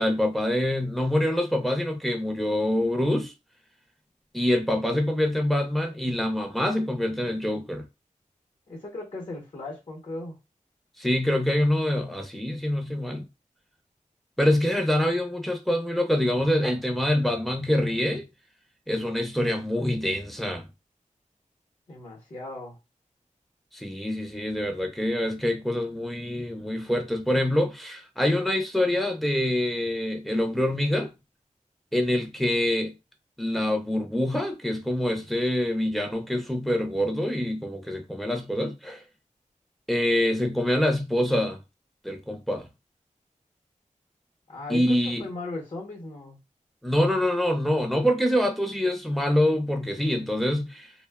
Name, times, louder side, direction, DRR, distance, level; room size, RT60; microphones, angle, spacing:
voice 1, 0.0-3.3 4.3-7.8 11.0-13.3 14.4-18.3 18.9-20.6 23.7-31.1 31.9-32.9 33.4-39.0 39.9-41.6 42.0-42.7 44.7-45.3 46.8-50.9, left 1 dB, ahead, 0.5 m, -25 dB
voice 2, 8.7-10.4 21.9-22.8 44.5-46.4, left 2 dB, 55° left, 0.8 m, -37 dB
2.6 x 2.1 x 2.2 m
wide cardioid pair, 90°, 13 cm